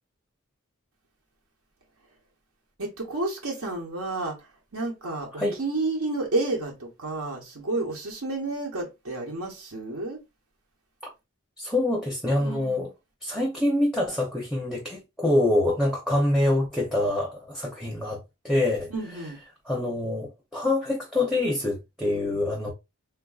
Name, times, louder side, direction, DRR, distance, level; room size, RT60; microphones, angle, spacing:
voice 1, 2.8-4.4 4.7-10.2 12.4-12.9 18.9-19.4, right 2 dB, 75° right, 1.0 m, -31 dB
voice 2, 11.6-12.9 13.2-18.2 18.4-18.9 19.7-22.7, left 1 dB, ahead, 0.6 m, -25 dB
3.6 x 2.5 x 2.3 m
head